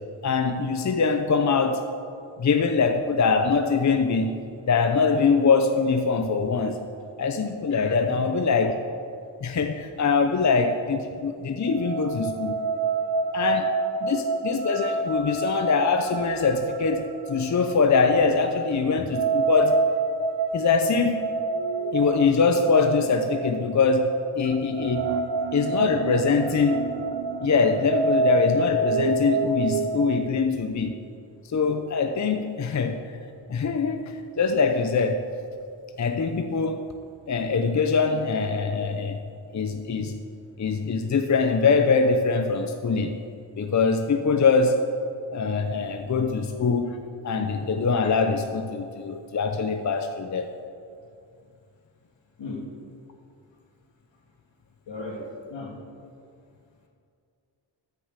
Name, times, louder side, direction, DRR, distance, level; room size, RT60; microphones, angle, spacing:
voice 1, 0.2-1.8 2.4-4.4 4.6-6.8 7.2-8.8 9.4-12.6 13.3-13.7 14.0-19.8 20.5-21.3 21.9-25.2 25.5-26.8 27.4-30.9 31.4-33.1 33.5-35.2 36.0-36.9 37.3-39.2 39.5-40.2 40.6-43.2 43.6-44.8 45.3-47.0 47.2-50.5, left 4 dB, 40° left, 6 dB, 0.7 m, -23 dB
voice 2, 7.9-8.4 46.0-46.1 52.4-52.6 54.9-55.2 55.5-55.7, left 3 dB, 80° left, -1 dB, 2.8 m, -36 dB
sound 1, 11.6-30.1, right 3 dB, 85° right, 1.0 m, -28 dB
13.5 x 6.9 x 8.2 m, 2.4 s
wide cardioid pair, 115°, 44 cm